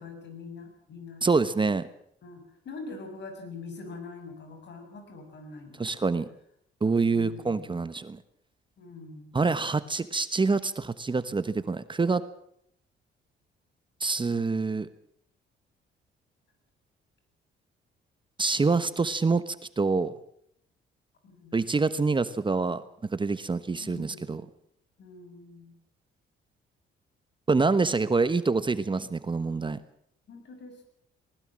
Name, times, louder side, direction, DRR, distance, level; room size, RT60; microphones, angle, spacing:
voice 1, 0.0-1.2 2.2-6.1 7.1-7.7 8.8-9.3 21.2-21.6 23.7-24.4 25.0-25.7 30.3-30.9, left 3 dB, 60° left, 6 dB, 6.9 m, -44 dB
voice 2, 1.2-1.9 5.8-6.3 6.8-8.2 9.3-12.2 14.0-14.9 18.4-20.1 21.5-22.8 23.1-24.4 27.5-29.8, right 4 dB, 25° right, 13 dB, 1.2 m, -26 dB
20.0 x 19.5 x 7.6 m, 0.70 s
cardioid pair, 90°, 20 cm